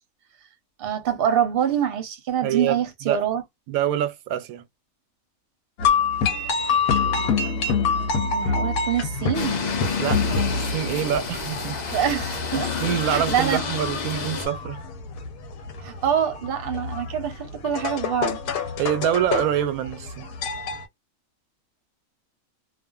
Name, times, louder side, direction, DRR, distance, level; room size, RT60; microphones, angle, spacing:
voice 1, 0.8-3.4 8.3-9.6 11.9-12.7 13.1-13.6 15.8-18.4, right 9 dB, 50° right, 0.8 m, -25 dB
voice 2, 2.4-3.2 3.7-4.6 10.0-12.0 12.5-14.8 18.8-20.3, right 10 dB, 90° right, 1.0 m, -26 dB
sound 1, 5.8-20.8, left 5 dB, 85° left, 1.1 m, -27 dB
sound 2, 9.3-14.5, left 5 dB, 45° left, 0.6 m, -29 dB
2.5 x 2.4 x 2.3 m
omnidirectional pair, 1.5 m